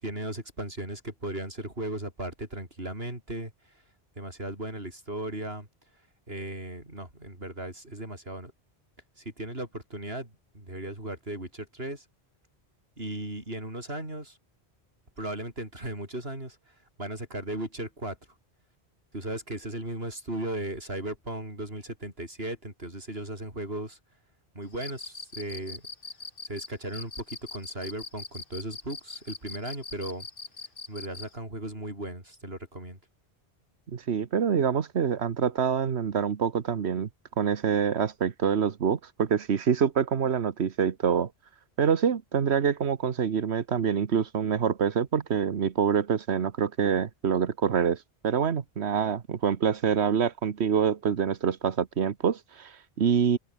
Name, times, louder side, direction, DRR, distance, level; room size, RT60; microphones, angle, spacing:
voice 1, 0.0-3.5 4.2-5.7 6.3-8.5 9.2-12.0 13.0-14.4 15.2-16.7 17.0-18.2 19.1-24.0 24.5-25.8 26.4-30.3 30.9-33.0, right 1 dB, 65° right, 6.8 m, -36 dB
Cricket, 24.7-31.3, left 3 dB, 55° left, 2.3 m, -41 dB
voice 2, 33.9-37.1 37.4-41.3 41.8-53.4, right 7 dB, 90° right, 1.4 m, -26 dB
open air
omnidirectional pair, 1.1 m